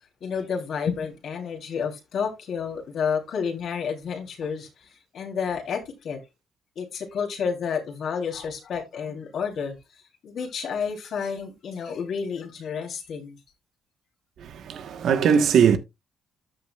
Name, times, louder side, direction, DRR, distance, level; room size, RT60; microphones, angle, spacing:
voice 1, 0.2-6.2 6.7-9.7 10.2-13.4, left 6 dB, 65° left, 3.1 m, -30 dB
voice 2, 14.7-15.8, right 7 dB, 70° right, 1.1 m, -19 dB
13.5 x 5.8 x 2.3 m
cardioid pair, 90°, 0 cm